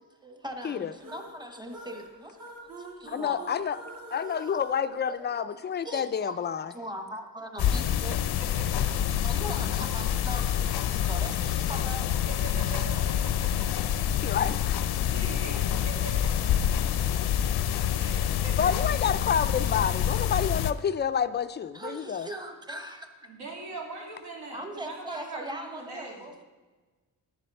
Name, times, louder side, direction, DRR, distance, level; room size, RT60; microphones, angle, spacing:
voice 1, 0.2-3.5 4.4-4.5 5.1-5.5 5.8-6.4 6.7-8.2 8.9-12.1 12.6-13.1 21.7-23.1 24.5-26.4, equal, 10° right, 5 dB, 1.0 m, -40 dB
sound 1, 1.0-5.7, right 2 dB, 55° right, 2.6 m, -46 dB
voice 2, 3.1-3.8 4.1-6.7 14.2-14.7 15.1-15.3 16.7-17.3 18.6-22.3, left 7 dB, 30° left, 13 dB, 0.4 m, -29 dB
sound 2, 7.6-20.7, left 10 dB, 75° left, 0.6 m, -27 dB
voice 3, 8.4-9.0 12.3-13.7 14.0-14.4 14.9-16.5 17.9-18.9 23.2-26.3, right 3 dB, 80° right, -1 dB, 3.2 m, -42 dB
10.0 x 10.0 x 5.3 m, 1.3 s
wide cardioid pair, 150°, 38 cm